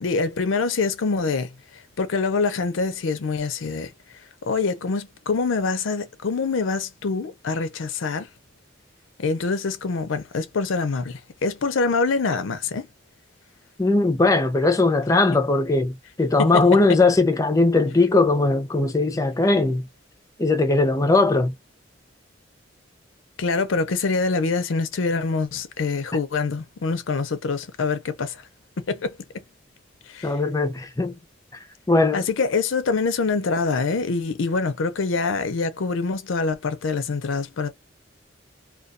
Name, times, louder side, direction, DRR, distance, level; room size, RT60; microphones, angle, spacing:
voice 1, 0.0-1.5 2.0-3.9 4.5-8.3 9.2-12.9 16.4-16.5 23.4-28.4 28.8-29.1 30.1-30.3 32.1-37.7, left 4 dB, 90° left, 0.5 m, -25 dB
voice 2, 13.8-19.9 20.4-21.5 30.2-31.2 31.5-32.2, left 3 dB, 15° left, 0.4 m, -19 dB
2.3 x 2.2 x 2.4 m
head